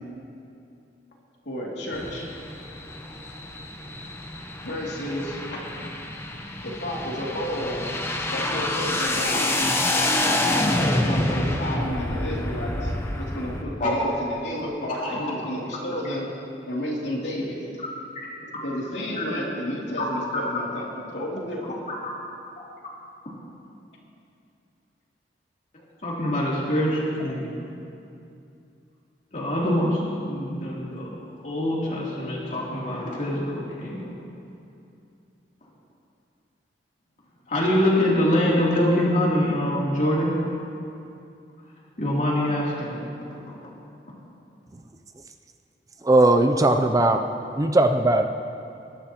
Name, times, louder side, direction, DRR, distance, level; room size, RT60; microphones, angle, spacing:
voice 1, 1.4-2.3 4.6-5.6 6.6-7.9 8.3-9.5 10.9-16.3 16.7-17.7 18.4-20.8 21.1-21.8, left 1 dB, 85° left, -4 dB, 2.7 m, -31 dB
sound 1, 1.9-13.6, left 1 dB, 15° left, 0.9 m, -27 dB
voice 2, 15.0-15.3 18.1-18.3 20.0-20.1 20.3-20.4 26.0-27.7 29.3-31.1 31.4-34.1 37.5-40.3 42.0-42.9 43.5-43.6, left 1 dB, 45° left, -6 dB, 3.1 m, -24 dB
voice 3, 46.0-47.2 47.6-48.3, right 2 dB, 20° right, 6 dB, 0.4 m, -18 dB
20.5 x 11.5 x 3.0 m, 2.6 s
head